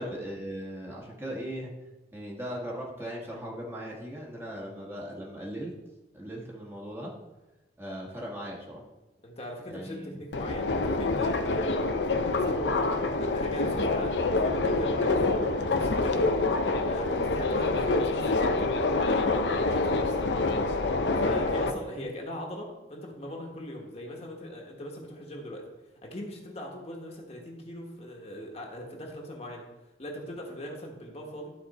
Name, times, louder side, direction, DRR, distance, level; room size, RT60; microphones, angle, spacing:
voice 1, 0.0-1.7 2.1-5.7 6.1-7.1 7.8-8.8 9.7-10.2 16.8-16.9, equal, 15° right, -3 dB, 1.4 m, -38 dB
voice 2, 9.2-11.9 12.2-16.3 16.8-20.2 21.2-25.6 26.0-29.6 30.0-31.5, equal, 35° left, 0 dB, 1.3 m, -40 dB
Subway metro underground, 10.3-21.7, left 3 dB, 80° left, 0.7 m, -26 dB
11.5 x 4.3 x 4.2 m, 1.0 s
head